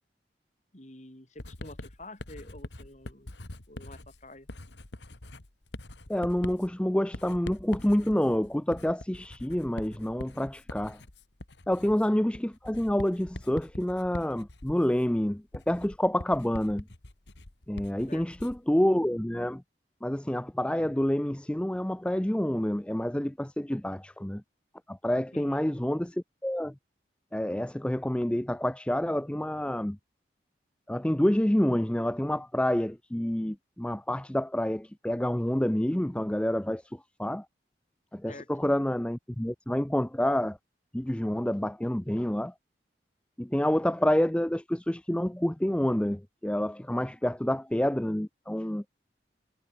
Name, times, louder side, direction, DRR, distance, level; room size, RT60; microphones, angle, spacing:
voice 1, 0.7-3.3 3.7-4.5 18.1-18.3 25.3-25.6 38.3-38.7, left 2 dB, 40° left, 3.5 m, -48 dB
Writing, 1.4-18.7, left 1 dB, 80° left, 2.2 m, -44 dB
voice 2, 6.1-11.0 11.7-16.8 17.7-19.6 20.0-24.4 24.9-26.7 27.3-30.0 30.9-37.5 38.1-40.6 40.9-42.5 43.4-48.8, left 1 dB, 5° left, 0.4 m, -28 dB
head